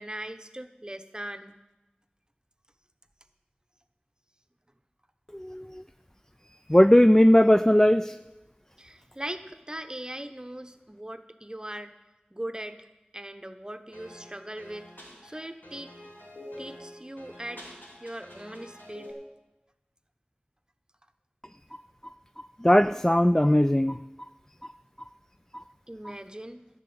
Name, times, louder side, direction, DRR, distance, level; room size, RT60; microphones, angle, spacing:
voice 1, 0.0-1.5 8.8-11.9 12.3-12.9 13.1-15.9 16.6-17.7 18.0-19.1 25.9-26.6, right 1 dB, 25° right, 9 dB, 0.9 m, -40 dB
voice 2, 5.3-5.8 6.7-8.2 22.6-24.3 24.6-24.7 25.0-25.1 25.5-25.6, left 1 dB, 15° left, 10 dB, 0.3 m, -19 dB
sound 1, 13.9-19.1, left 1 dB, 90° left, 2.9 m, -47 dB
12.0 x 6.8 x 8.7 m, 1.0 s
wide cardioid pair, 40°, 3 cm